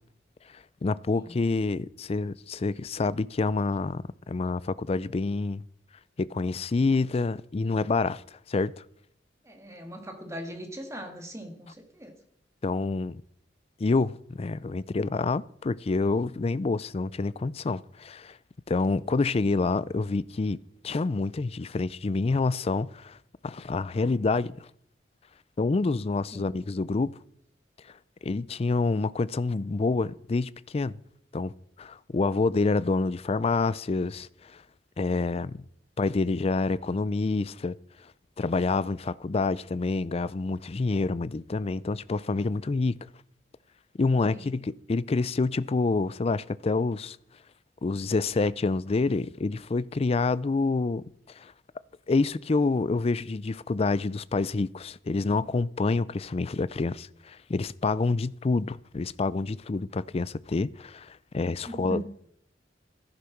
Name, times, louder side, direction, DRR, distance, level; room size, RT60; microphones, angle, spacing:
voice 1, 0.5-5.6 6.2-8.2 8.5-8.7 12.6-13.2 13.8-18.4 18.7-20.6 20.8-23.2 23.4-24.7 25.6-27.2 28.2-31.0 31.3-31.5 31.8-34.6 35.0-35.7 36.0-37.8 38.4-43.0 44.0-47.2 47.8-51.0 51.4-51.5 52.1-62.0, left 3 dB, 35° left, 0.4 m, -27 dB
voice 2, 9.4-12.1 26.3-26.5 44.3-44.4 61.7-62.0, right 1 dB, 15° right, 2.1 m, -40 dB
14.5 x 9.9 x 5.9 m
head